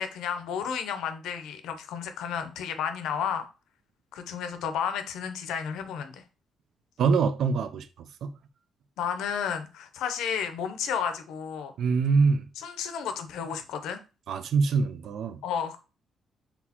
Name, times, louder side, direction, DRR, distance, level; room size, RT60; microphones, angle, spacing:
voice 1, 0.0-3.4 4.1-6.2 9.0-11.7 12.6-14.0 15.4-15.8, left 7 dB, 85° left, 0.6 m, -32 dB
voice 2, 7.0-7.9 8.2-8.3 11.8-12.5 14.3-15.4, right 5 dB, 70° right, 0.5 m, -24 dB
4.1 x 3.6 x 2.9 m
cardioid pair, 90°, 0 cm